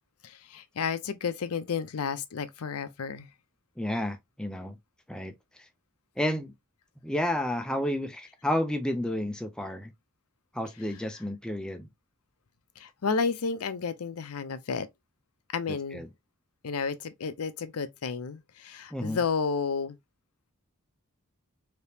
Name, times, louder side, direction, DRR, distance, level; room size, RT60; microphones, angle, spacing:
voice 1, 0.2-3.3 12.8-14.9 15.5-16.1 16.6-20.0, left 5 dB, 85° left, 0.5 m, -31 dB
voice 2, 3.8-4.8 5.1-5.7 6.2-6.5 7.0-9.9 10.5-11.9 15.9-16.1 18.9-19.2, left 1 dB, 5° left, 0.3 m, -31 dB
3.4 x 2.9 x 2.7 m
head